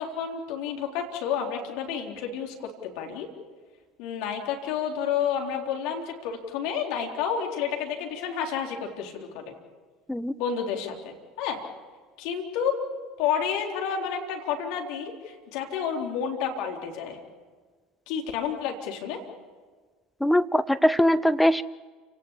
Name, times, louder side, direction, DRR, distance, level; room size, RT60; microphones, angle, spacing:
voice 1, 0.0-3.3 4.0-9.5 10.4-11.6 12.2-12.8 13.2-17.2 18.1-19.2, left 7 dB, 65° left, 2 dB, 3.9 m, -30 dB
voice 2, 20.2-21.6, equal, 5° left, 14 dB, 0.6 m, -21 dB
29.5 x 18.5 x 7.3 m, 1.5 s
hypercardioid pair, 70°, 0 cm